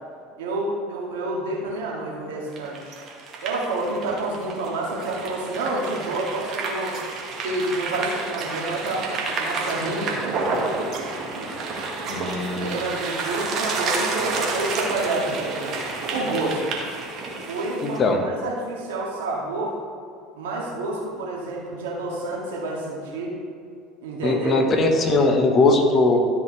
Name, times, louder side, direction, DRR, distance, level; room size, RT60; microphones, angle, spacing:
voice 1, 0.4-2.9 3.4-7.0 7.4-10.2 10.8-11.0 11.3-11.5 12.6-15.8 16.1-16.6 17.5-19.8 20.4-23.4 24.0-24.6, right 2 dB, 75° right, -3 dB, 2.1 m, -29 dB
sound 1, 2.5-18.0, right 3 dB, 50° right, 1.7 m, -30 dB
voice 2, 12.1-12.8 17.8-18.3 24.2-26.2, left 3 dB, 40° left, 3 dB, 1.4 m, -20 dB
13.0 x 5.6 x 3.4 m, 2.4 s
hypercardioid pair, 70°, 0 cm